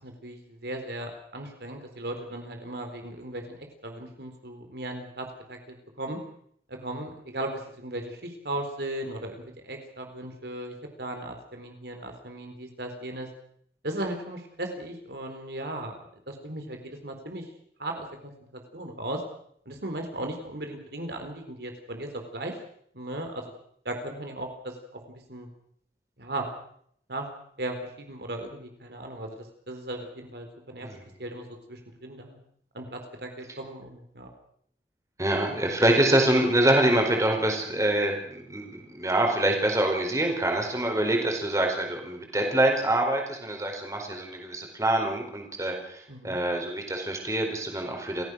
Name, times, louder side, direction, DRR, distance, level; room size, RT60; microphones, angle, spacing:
voice 1, 0.0-6.2 6.7-13.3 13.8-16.0 16.3-17.4 17.8-19.2 19.7-22.5 22.9-23.4 23.8-25.0 25.3-25.5 26.2-26.5 27.1-27.3 27.6-30.9 31.2-32.4 32.7-34.3 46.1-46.4, right 1 dB, 65° right, 4 dB, 4.0 m, -37 dB
voice 2, 35.2-48.2, right 1 dB, 20° right, 2 dB, 4.6 m, -25 dB
28.5 x 16.0 x 6.4 m, 0.66 s
head